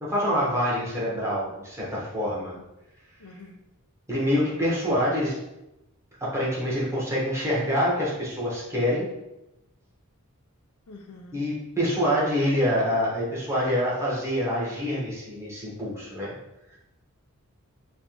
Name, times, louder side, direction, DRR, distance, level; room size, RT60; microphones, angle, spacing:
voice 1, 0.0-2.5 4.1-5.4 6.2-9.1 11.3-16.3, equal, 10° right, -6 dB, 1.0 m, -26 dB
voice 2, 3.2-3.6 10.9-11.4, left 3 dB, 85° left, 3 dB, 0.5 m, -46 dB
3.2 x 3.0 x 2.9 m, 0.91 s
head